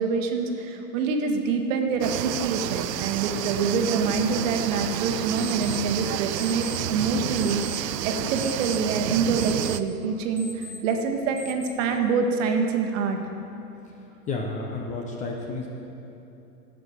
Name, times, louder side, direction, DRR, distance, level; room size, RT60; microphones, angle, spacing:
voice 1, 0.0-13.2, right 5 dB, 50° right, 4 dB, 1.3 m, -26 dB
sound 1, 1.3-11.7, left 2 dB, 5° right, 2.0 m, -47 dB
sound 2, 2.0-9.8, right 12 dB, 90° right, 0.5 m, -30 dB
voice 2, 14.3-15.7, left 3 dB, 15° left, 0 dB, 0.6 m, -31 dB
11.5 x 5.9 x 7.7 m, 2.9 s
hypercardioid pair, 135°, 48 cm